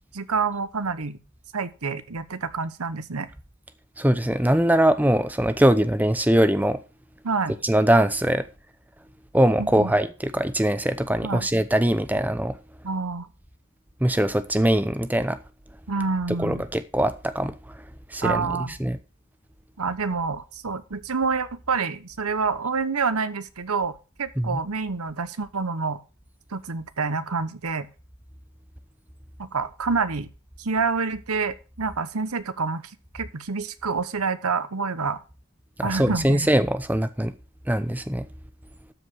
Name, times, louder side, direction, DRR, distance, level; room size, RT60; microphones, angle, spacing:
voice 1, 0.1-1.2 1.5-3.3 7.2-7.6 9.6-9.9 11.2-11.5 12.8-13.3 15.9-16.7 18.2-18.7 19.8-26.0 26.5-27.9 29.4-30.3 30.6-32.8 33.1-35.2 35.8-36.5, right 4 dB, 90° right, 1.0 m, -27 dB
voice 2, 4.0-6.8 7.6-8.4 9.3-12.6 14.0-15.4 16.4-17.6 18.1-18.5 18.8-19.0 24.4-24.6 35.8-37.3 37.7-38.2, right 1 dB, 5° right, 0.6 m, -22 dB
12.5 x 5.0 x 6.1 m
head